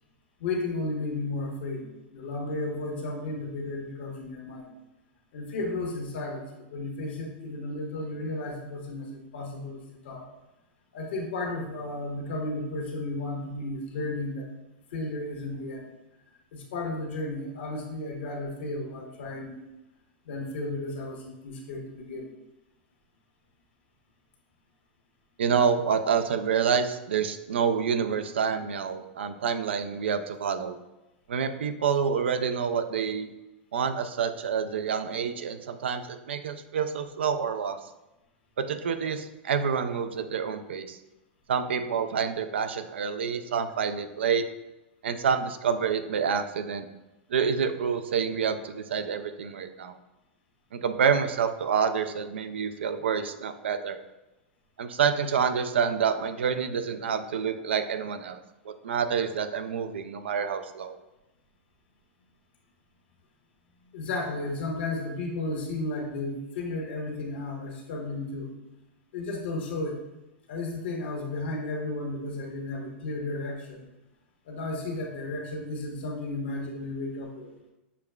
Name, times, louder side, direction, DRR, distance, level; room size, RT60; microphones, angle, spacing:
voice 1, 0.4-4.7 5.3-6.4 6.7-10.3 10.9-14.5 14.9-15.9 16.5-19.6 20.2-22.3 63.9-68.5 69.1-70.0 70.5-73.9 74.5-77.5, left 2 dB, 75° left, 0 dB, 1.0 m, -33 dB
voice 2, 25.4-30.8 31.3-33.3 33.7-37.8 38.6-41.0 41.5-44.4 45.0-46.9 47.3-49.9 50.7-54.0 54.8-58.4 58.7-60.9, right 6 dB, 85° right, 9 dB, 0.4 m, -28 dB
6.7 x 2.3 x 2.2 m, 0.99 s
hypercardioid pair, 115°, 6 cm